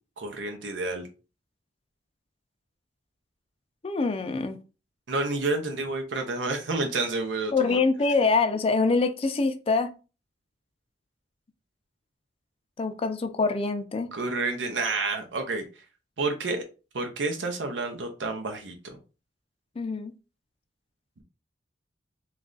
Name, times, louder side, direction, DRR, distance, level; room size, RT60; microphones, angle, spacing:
voice 1, 0.2-1.1 5.1-7.8 14.1-15.6 16.2-16.6 16.9-19.0, right 3 dB, 75° right, 0.6 m, -29 dB
voice 2, 3.8-4.6 7.5-9.9 12.8-14.1 19.8-20.1, left 4 dB, 30° left, 0.4 m, -25 dB
3.2 x 2.4 x 3.8 m
head